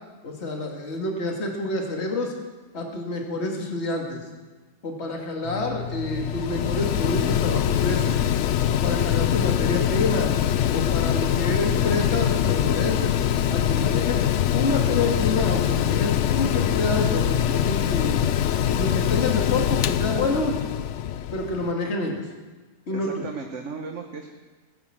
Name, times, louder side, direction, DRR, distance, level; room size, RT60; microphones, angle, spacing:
voice 1, 0.2-2.3 2.7-4.2 4.8-8.2 8.7-10.3 10.7-13.2 13.5-14.2 14.5-18.3 18.8-20.6 21.3-22.2 22.9-23.2, left 2 dB, 45° left, 1 dB, 2.2 m, -28 dB
Mechanical fan, 5.4-21.7, left 10 dB, 60° left, 0.8 m, -23 dB
voice 2, 22.9-24.3, right 4 dB, 50° right, 3 dB, 1.4 m, -35 dB
17.5 x 10.5 x 7.5 m, 1.3 s
omnidirectional pair, 1.7 m